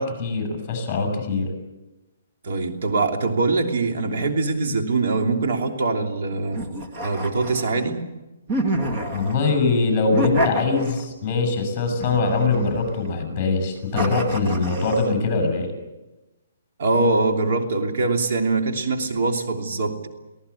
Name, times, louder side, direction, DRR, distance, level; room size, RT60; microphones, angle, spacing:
voice 1, 0.0-1.5 9.1-15.7, left 3 dB, 20° left, 5 dB, 7.4 m, -22 dB
voice 2, 2.4-6.6 7.0-8.0 16.8-20.1, right 3 dB, 60° right, 3 dB, 3.0 m, -23 dB
sound 1, 6.5-7.9 8.5-9.5 10.1-11.2 12.0-13.1 13.9-15.1, right 1 dB, 25° right, 2.2 m, -28 dB
24.5 x 18.0 x 8.4 m, 1.0 s
hypercardioid pair, 165°, 0 cm